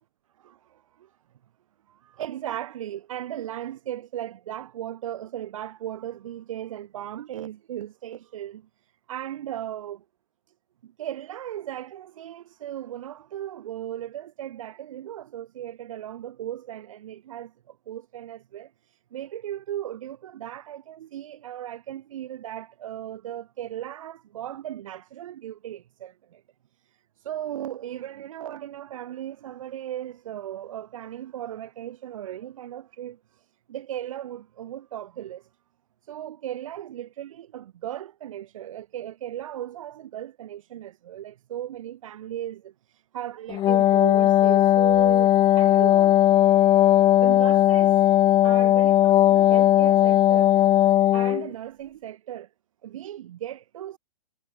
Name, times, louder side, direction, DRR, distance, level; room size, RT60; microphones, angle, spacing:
voice 1, 0.4-1.1 1.9-10.0 10.8-26.4 27.2-35.5 36.0-46.2 47.1-48.0 48.4-50.5 51.1-52.5 52.8-54.0, right 11 dB, 55° right, 6.7 m, -37 dB
Wind instrument woodwind instrument, 43.5-51.5, left 13 dB, 20° left, 1.5 m, -18 dB
figure-of-eight pair, 115°, 20 cm